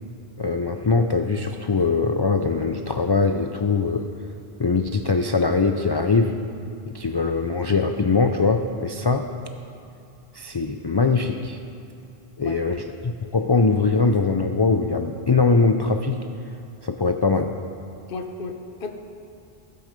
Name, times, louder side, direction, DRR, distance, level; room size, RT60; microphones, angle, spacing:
voice 1, 0.4-4.0 4.6-6.3 6.9-9.3 10.3-11.6 12.4-16.2 16.8-17.5, left 4 dB, 40° left, 5 dB, 0.3 m, -22 dB
voice 2, 18.1-18.9, left 4 dB, 60° left, 4 dB, 1.1 m, -33 dB
16.0 x 7.9 x 5.2 m, 2.7 s
omnidirectional pair, 1.0 m